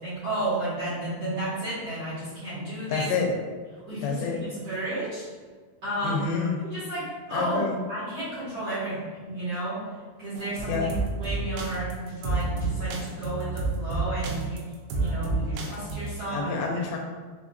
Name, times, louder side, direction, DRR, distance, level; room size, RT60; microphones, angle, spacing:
voice 1, 0.0-3.1 3.9-5.2 5.8-6.2 6.7-7.6 7.9-14.6 14.9-16.7, right 1 dB, 55° right, -13 dB, 1.9 m, -32 dB
voice 2, 2.9-3.3 4.0-4.4 6.0-6.6 7.3-7.8 10.7-10.9 16.3-17.0, left 5 dB, 85° left, 1 dB, 2.7 m, -28 dB
sound 1, 10.4-16.1, right 3 dB, 85° right, 2.9 m, -30 dB
6.5 x 2.5 x 2.5 m, 1.4 s
omnidirectional pair, 5.0 m